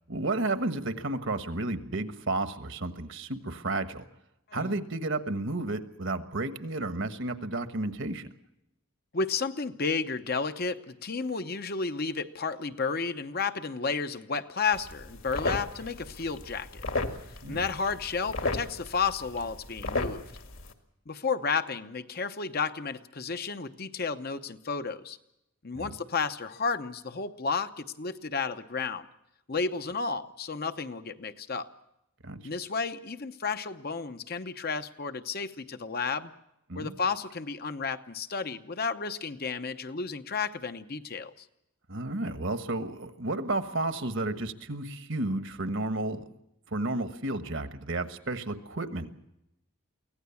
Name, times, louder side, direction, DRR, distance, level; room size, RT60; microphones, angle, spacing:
voice 1, 0.1-4.1 4.5-8.3 17.4-17.6 25.7-25.9 32.2-32.4 36.7-36.9 41.9-46.2 46.7-49.1, right 2 dB, 55° right, 10 dB, 1.3 m, -32 dB
voice 2, 9.1-16.8 17.5-20.2 21.1-25.2 25.6-29.0 29.5-31.7 32.4-36.3 36.7-41.4, left 5 dB, 45° left, 9 dB, 0.9 m, -32 dB
sound 1, 14.7-20.7, left 3 dB, 60° left, 1.9 m, -35 dB
24.0 x 16.5 x 7.1 m, 0.85 s
head